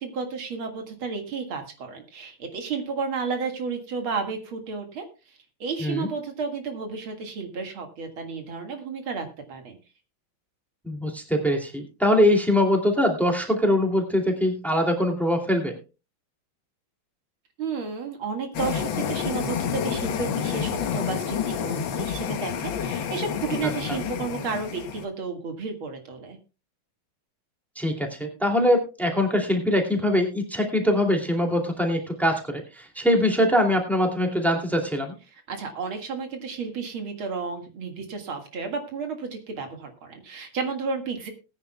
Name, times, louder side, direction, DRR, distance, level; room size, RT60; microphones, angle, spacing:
voice 1, 0.0-5.0 5.6-9.8 17.6-26.4 35.3-41.3, right 5 dB, 80° right, 4 dB, 2.8 m, -32 dB
voice 2, 10.8-15.8 27.8-35.1, left 1 dB, ahead, 2 dB, 2.4 m, -23 dB
sound 1, 18.5-25.1, left 8 dB, 70° left, 1.7 m, -29 dB
20.0 x 9.8 x 2.3 m, 0.30 s
omnidirectional pair, 2.2 m